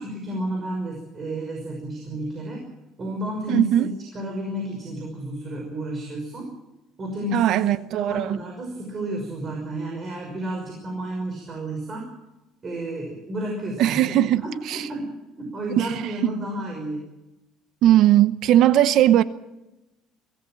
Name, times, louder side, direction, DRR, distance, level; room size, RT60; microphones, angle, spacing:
voice 1, 0.0-2.6 3.0-6.5 7.0-7.6 7.9-12.0 12.6-17.0, right 1 dB, 25° right, 5.7 m, -31 dB
voice 2, 3.5-3.9 7.3-8.4 13.8-14.9 15.8-16.1 17.8-19.2, right 12 dB, 55° right, 0.8 m, -19 dB
24.0 x 18.0 x 7.6 m
cardioid pair, 160°, 0 cm